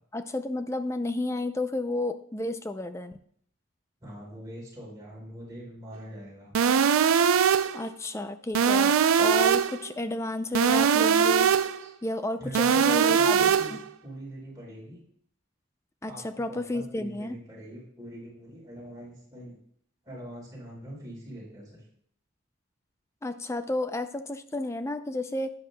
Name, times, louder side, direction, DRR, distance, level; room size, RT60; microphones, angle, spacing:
voice 1, 0.1-3.2 7.7-11.5 12.0-13.5 16.0-17.4 23.2-25.5, left 1 dB, 15° left, 9 dB, 0.4 m, -32 dB
voice 2, 4.0-6.5 11.8-11.9 12.4-15.0 16.0-19.5 20.0-21.8, equal, 20° right, -4 dB, 4.1 m, -43 dB
sound 1, 6.5-7.8 8.5-9.8 10.5-11.8 12.5-13.8, right 7 dB, 90° right, 0.4 m, -21 dB
11.5 x 9.7 x 2.2 m, 0.64 s
head